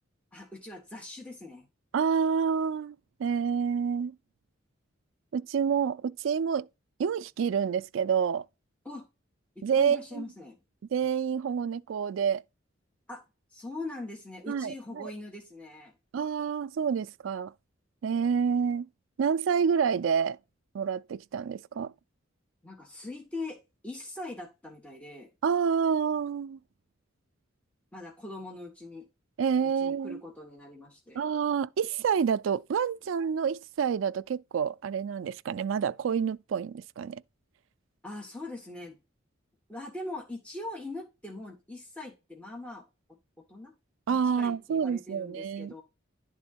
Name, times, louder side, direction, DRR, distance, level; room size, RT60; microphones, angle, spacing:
voice 1, 0.3-1.7 8.8-9.0 9.5-10.6 13.1-13.2 13.5-15.9 22.6-23.6 23.8-25.3 27.9-29.1 29.8-31.2 38.0-39.0 39.7-42.8 43.4-43.7 44.1-45.8, left 2 dB, 5° left, 1.4 m, -41 dB
voice 2, 1.9-4.2 5.3-6.7 7.0-8.4 9.6-10.3 10.9-12.4 14.5-15.1 16.1-17.5 18.0-18.9 19.2-20.4 20.7-21.9 25.4-26.6 29.4-30.2 31.1-37.2 44.1-45.7, right 6 dB, 75° right, 0.3 m, -28 dB
11.0 x 3.8 x 4.3 m
head